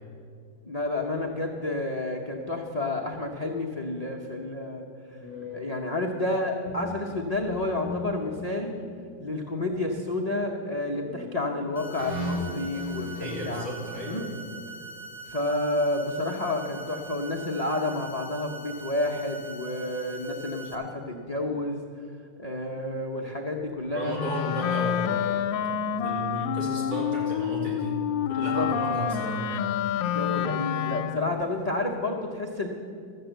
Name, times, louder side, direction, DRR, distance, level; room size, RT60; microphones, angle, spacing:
voice 1, 0.7-4.9 5.5-8.7 9.2-13.7 14.0-14.3 15.3-21.8 22.4-24.2 28.3-28.7 30.1-32.7, left 2 dB, 55° left, -1 dB, 0.4 m, -30 dB
sound 1, 5.2-7.0 7.2-8.8 9.5-10.5 11.0-11.5 12.0-13.4, left 1 dB, 35° right, 2.9 m, -37 dB
sound 2, 11.7-20.7, right 3 dB, 5° left, 1.5 m, -43 dB
voice 2, 13.2-14.2 23.9-25.3 26.0-27.9 28.3-29.6, equal, 70° right, -5 dB, 3.8 m, -34 dB
Wind instrument woodwind instrument, 24.1-31.4, left 9 dB, 80° left, 1.3 m, -28 dB
13.5 x 7.2 x 7.9 m, 2.4 s
omnidirectional pair, 2.0 m